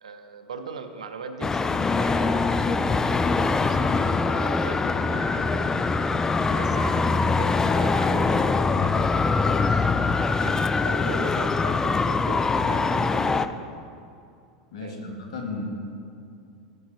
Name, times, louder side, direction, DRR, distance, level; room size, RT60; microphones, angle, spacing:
voice 1, 0.0-5.8 6.5-9.9 10.4-13.7 14.8-15.2, right 5 dB, 85° right, 8 dB, 0.6 m, -40 dB
Traffic noise roadway noise, 1.4-13.5, left 4 dB, 15° left, 0.3 m, -23 dB
voice 2, 14.7-15.7, left 3 dB, 70° left, 2 dB, 1.4 m, -35 dB
14.5 x 4.9 x 3.1 m, 2.5 s
hypercardioid pair, 90°, 3 cm